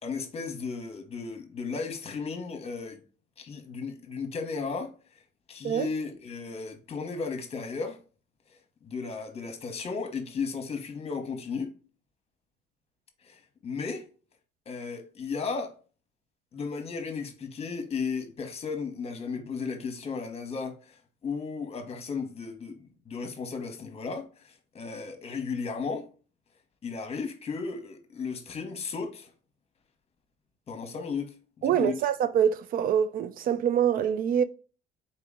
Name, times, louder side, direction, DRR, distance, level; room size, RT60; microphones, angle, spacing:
voice 1, 0.0-3.0 3.4-4.9 5.5-8.0 8.5-11.7 13.2-14.1 14.7-15.8 16.5-21.0 21.2-26.1 26.8-29.3 30.7-31.3 31.6-31.9, left 5 dB, 35° left, 1.0 m, -35 dB
voice 2, 31.6-34.4, right 9 dB, 60° right, 0.4 m, -25 dB
4.3 x 2.9 x 3.6 m
cardioid pair, 110°, 17 cm